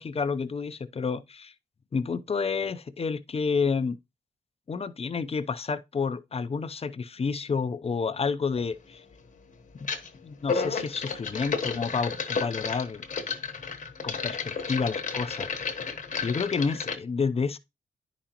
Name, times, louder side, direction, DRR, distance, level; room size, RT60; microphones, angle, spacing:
voice 1, 0.0-1.5 1.9-4.0 4.7-9.0 9.8-9.9 10.2-13.0 14.0-15.5 16.2-17.6, left 5 dB, 40° left, 0.6 m, -29 dB
sound 1, 8.5-8.7 9.8-10.1 10.4-17.0, left 5 dB, 55° left, 1.1 m, -32 dB
9.9 x 5.1 x 2.9 m
cardioid pair, 80°, 16 cm